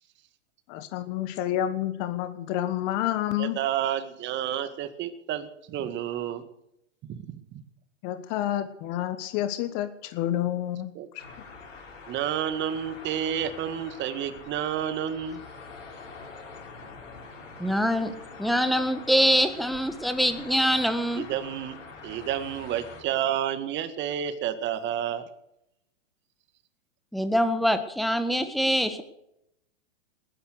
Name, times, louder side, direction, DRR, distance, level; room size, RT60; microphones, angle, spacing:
voice 1, 0.7-3.6 8.0-10.9, left 12 dB, 40° left, 10 dB, 1.3 m, -29 dB
voice 2, 3.4-6.4 7.1-7.6 10.9-11.1 12.1-15.4 21.2-21.8 22.0-25.3, right 10 dB, 30° right, 10 dB, 1.9 m, -30 dB
sound 1, 11.2-23.0, left 4 dB, 80° left, 4.9 m, -45 dB
voice 3, 17.6-18.1 18.4-21.2 27.1-29.0, equal, ahead, 9 dB, 1.5 m, -24 dB
20.0 x 10.5 x 6.6 m, 0.81 s
hypercardioid pair, 115°, 37 cm